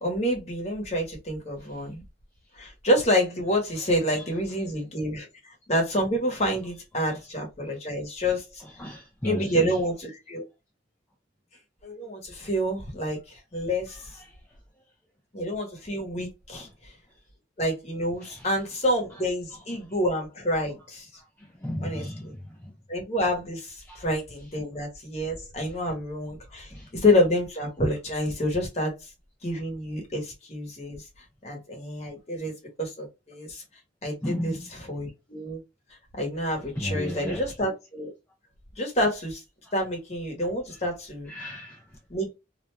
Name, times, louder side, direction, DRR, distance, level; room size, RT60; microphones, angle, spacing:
voice 1, 0.0-2.0 2.5-5.3 5.7-8.6 9.2-10.4 11.8-14.1 15.3-16.9 17.6-21.1 21.8-22.0 22.9-29.1 29.4-31.0 31.4-32.5 32.8-33.6 34.0-34.5 34.9-35.6 36.2-38.1 38.8-39.4 39.7-41.3 42.1-42.3, equal, 35° left, 0.9 m, -28 dB
voice 2, 3.7-4.9 6.7-7.2 8.6-9.9 13.9-14.3 16.5-16.8 18.2-19.9 20.8-20.9 21.4-22.8 23.9-24.1 24.4-24.6 25.6-25.7 26.7-26.9 34.2-34.9 36.6-37.6 40.4-40.9 41.2-42.0, equal, 10° left, 0.4 m, -37 dB
2.4 x 2.2 x 3.0 m
head